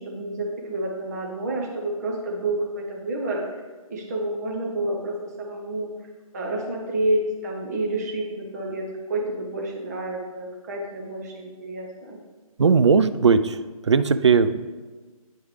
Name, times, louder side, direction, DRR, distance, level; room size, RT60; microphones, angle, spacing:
voice 1, 0.0-3.6 3.9-5.9 6.3-12.2, right 1 dB, 25° right, -1 dB, 1.0 m, -29 dB
voice 2, 12.6-13.6 13.8-14.7, right 5 dB, 50° right, 11 dB, 0.4 m, -18 dB
9.2 x 4.6 x 3.3 m, 1.3 s
figure-of-eight pair, 150°, 19 cm